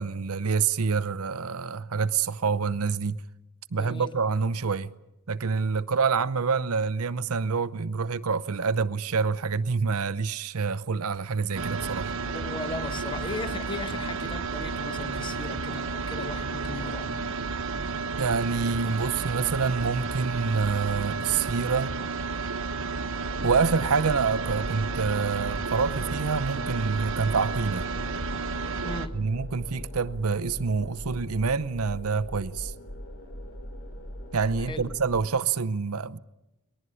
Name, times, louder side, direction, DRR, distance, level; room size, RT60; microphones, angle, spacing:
voice 1, 0.0-3.2 3.7-4.9 5.3-12.1 18.2-21.9 23.4-27.9 29.1-32.7 34.3-36.2, right 5 dB, 85° right, 0.7 m, -27 dB
voice 2, 3.7-4.2 12.3-17.5 28.8-29.3 34.6-34.9, left 3 dB, 20° left, 1.0 m, -38 dB
sound 1, 11.5-29.1, right 4 dB, 65° right, 1.2 m, -32 dB
sound 2, 23.2-35.2, equal, 65° left, 2.9 m, -40 dB
21.5 x 19.0 x 9.9 m
head